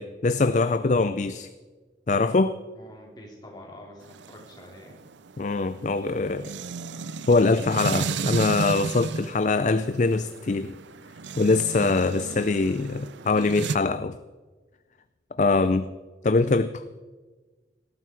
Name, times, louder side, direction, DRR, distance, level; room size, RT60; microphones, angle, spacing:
voice 1, 0.0-1.5 2.1-2.6 5.4-6.5 7.3-10.8 11.4-14.2 15.4-15.9 16.2-16.7, left 3 dB, 40° left, 13 dB, 0.4 m, -23 dB
voice 2, 2.7-5.0, left 1 dB, 20° left, -1 dB, 3.7 m, -46 dB
sound 1, 4.0-13.8, right 4 dB, 75° right, 0.5 m, -34 dB
18.0 x 13.5 x 4.8 m, 1.3 s
head